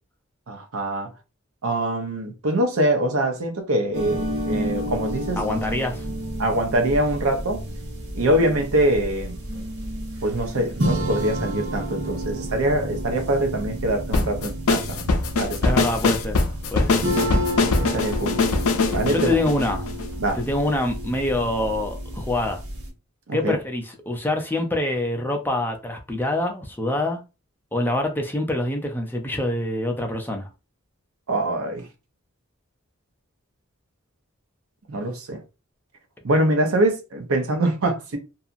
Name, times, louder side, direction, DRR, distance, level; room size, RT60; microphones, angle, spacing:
voice 1, 0.5-1.1 1.6-5.4 6.4-7.6 8.1-9.4 10.2-15.1 15.4-15.8 17.3-17.4 17.8-18.4 18.9-19.3 20.2-20.4 23.3-23.5 31.3-31.9 34.9-35.4 36.2-38.2, right 1 dB, 75° right, 0.7 m, -24 dB
sound 1, 3.9-22.9, equal, 60° right, 1.1 m, -30 dB
voice 2, 5.4-6.1 15.6-16.4 16.7-17.0 19.1-19.9 20.3-22.6 23.3-27.2 27.7-30.5, left 1 dB, 10° left, 0.4 m, -25 dB
sound 2, 14.1-20.4, left 3 dB, 90° left, 0.5 m, -22 dB
2.7 x 2.4 x 2.4 m
head